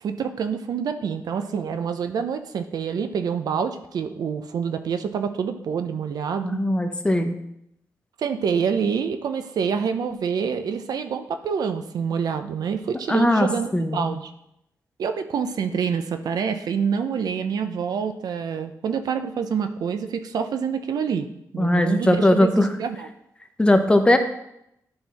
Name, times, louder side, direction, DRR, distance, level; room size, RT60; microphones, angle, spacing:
voice 1, 0.0-6.6 8.2-14.3 15.0-21.3 21.5-23.1, right 6 dB, 80° right, 8 dB, 0.6 m, -27 dB
voice 2, 6.4-7.3 13.1-13.5 13.7-14.1 21.6-22.7 23.6-24.2, left 1 dB, 15° left, 6 dB, 0.7 m, -19 dB
10.5 x 4.0 x 4.1 m, 0.80 s
wide cardioid pair, 120°, 7 cm